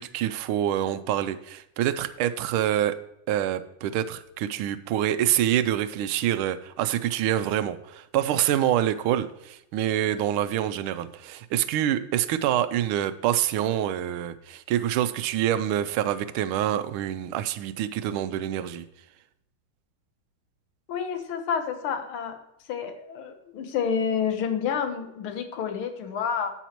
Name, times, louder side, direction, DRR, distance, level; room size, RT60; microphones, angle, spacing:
voice 1, 0.0-2.9 3.3-18.9, right 11 dB, 85° right, 12 dB, 1.5 m, -26 dB
voice 2, 20.9-22.4 22.7-26.5, left 7 dB, 85° left, 7 dB, 1.9 m, -29 dB
10.0 x 8.1 x 3.0 m, 0.82 s
omnidirectional pair, 2.3 m